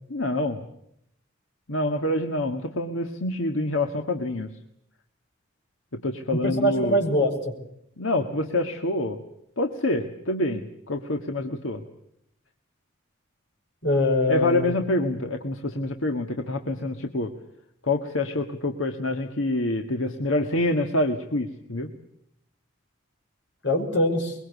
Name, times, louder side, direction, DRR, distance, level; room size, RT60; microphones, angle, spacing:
voice 1, 0.1-0.7 1.7-4.5 5.9-7.0 8.0-9.2 9.6-11.8 14.3-17.3 17.8-21.9, left 1 dB, 80° left, 5 dB, 1.7 m, -26 dB
voice 2, 6.3-7.5 13.8-14.7 23.6-24.4, left 1 dB, 60° left, 3 dB, 6.0 m, -23 dB
24.0 x 22.5 x 8.2 m, 0.75 s
head